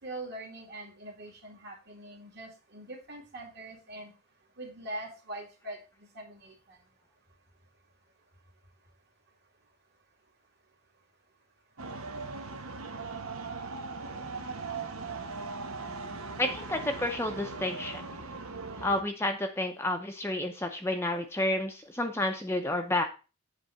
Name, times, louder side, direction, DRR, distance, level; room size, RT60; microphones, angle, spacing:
voice 1, 0.0-4.1 4.6-6.8, right 1 dB, 50° right, 0 dB, 2.3 m, -43 dB
sound 1, 11.8-19.0, right 4 dB, 80° right, 1.0 m, -39 dB
voice 2, 16.4-18.1 18.8-23.0, left 1 dB, 10° left, 4 dB, 0.6 m, -30 dB
8.2 x 3.3 x 6.2 m, 0.32 s
head